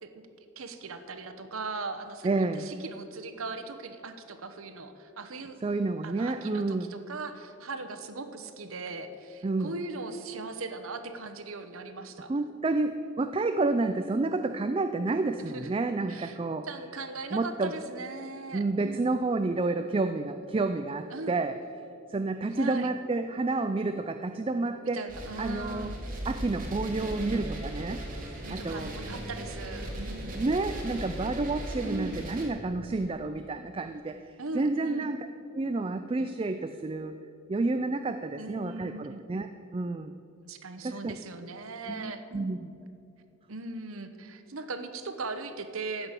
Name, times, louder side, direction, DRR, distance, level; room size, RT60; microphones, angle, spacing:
voice 1, 0.6-5.6 6.0-12.3 15.4-15.7 16.1-16.4 16.6-19.1 21.1-21.4 22.5-22.9 24.9-26.1 28.4-30.4 31.8-32.2 34.4-35.1 38.4-39.2 40.4-42.6 43.5-46.1, right 3 dB, 85° right, 8 dB, 1.0 m, -39 dB
voice 2, 2.2-2.7 5.6-6.9 9.4-9.7 12.3-16.7 17.3-17.7 18.5-21.6 22.1-25.0 25.4-25.9 26.3-28.0 28.5-28.9 30.3-35.2 35.5-37.2 37.5-39.5 39.7-40.1 40.8-41.2 41.9-42.7, right 3 dB, 25° right, 9 dB, 0.3 m, -30 dB
sound 1, 25.1-32.5, right 1 dB, 40° right, 2.3 m, -38 dB
15.0 x 5.9 x 8.2 m, 2.7 s
head